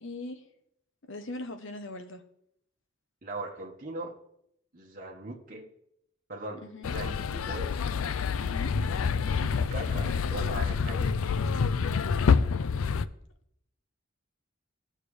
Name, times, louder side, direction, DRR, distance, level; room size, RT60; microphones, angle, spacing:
voice 1, 0.0-0.5 1.1-2.2 6.6-6.9 8.4-8.7, left 2 dB, 65° left, 7 dB, 1.0 m, -40 dB
voice 2, 3.2-4.1 4.7-5.7 6.3-7.7 9.4-11.3, right 2 dB, 40° right, -2 dB, 1.4 m, -40 dB
sound 1, 6.8-13.0, left 5 dB, 85° left, 0.4 m, -27 dB
16.5 x 6.6 x 3.3 m, 0.76 s
head